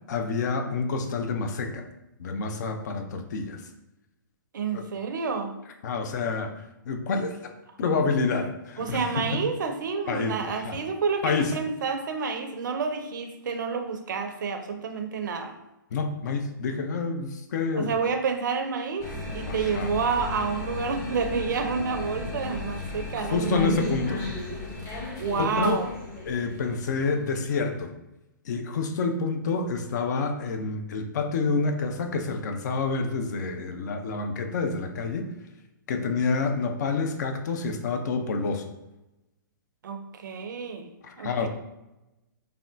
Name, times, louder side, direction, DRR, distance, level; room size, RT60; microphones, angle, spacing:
voice 1, 0.1-1.8 2.2-3.6 4.7-4.9 5.8-6.5 6.9-7.5 7.8-9.2 10.1-10.3 10.6-10.8 11.2-11.5 15.9-17.9 19.5-19.9 23.2-24.2 25.3-25.8 26.3-27.9 28.5-35.3 35.9-38.7 41.0-41.5, left 4 dB, 55° left, 6 dB, 0.4 m, -28 dB
voice 2, 4.5-5.6 8.8-15.5 17.7-23.7 25.2-25.9 39.8-40.9 41.2-41.5, right 5 dB, 65° right, 6 dB, 0.5 m, -29 dB
sound 1, 19.0-27.6, left 3 dB, 25° left, 0.8 m, -34 dB
3.5 x 2.2 x 2.5 m, 0.95 s
figure-of-eight pair, 125°, 11 cm